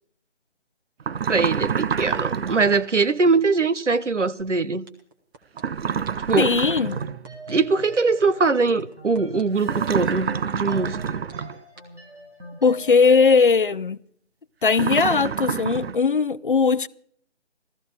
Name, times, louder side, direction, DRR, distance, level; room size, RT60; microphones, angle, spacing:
sound 1, 1.0-2.8 5.6-7.2 9.6-11.6 14.7-16.0, right 7 dB, 60° right, 0.5 m, -27 dB
voice 1, 1.3-4.9 6.3-6.5 7.5-11.0, right 4 dB, 90° right, 1.2 m, -22 dB
sound 2, 4.4-4.5 4.9-5.6 6.0-6.3 6.8-7.5 7.9-8.2 8.7-9.4 9.9-10.1 10.6-11.3 11.8-11.9, right 3 dB, 20° right, 1.5 m, -46 dB
voice 2, 6.4-7.0 12.6-14.0 14.6-16.9, left 5 dB, 50° left, 0.5 m, -19 dB
sound 3, 6.6-13.5, right 1 dB, 75° right, 6.9 m, -42 dB
16.0 x 14.5 x 4.9 m
figure-of-eight pair, 155°, 35 cm